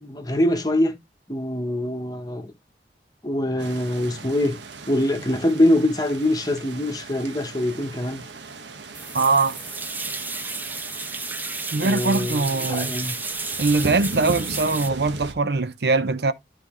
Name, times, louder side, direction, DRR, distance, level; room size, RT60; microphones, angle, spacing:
voice 1, 0.0-0.9 1.3-2.5 3.2-4.6 4.9-8.2 11.7-13.1, left 1 dB, 20° left, 1.0 m, -24 dB
sound 1, 3.6-15.3, right 3 dB, 90° right, 1.3 m, -37 dB
sound 2, 8.9-14.9, right 3 dB, 10° right, 0.5 m, -32 dB
voice 2, 9.1-9.6 11.7-12.9 13.6-16.3, right 3 dB, 70° right, 0.7 m, -22 dB
12.0 x 4.5 x 3.0 m
head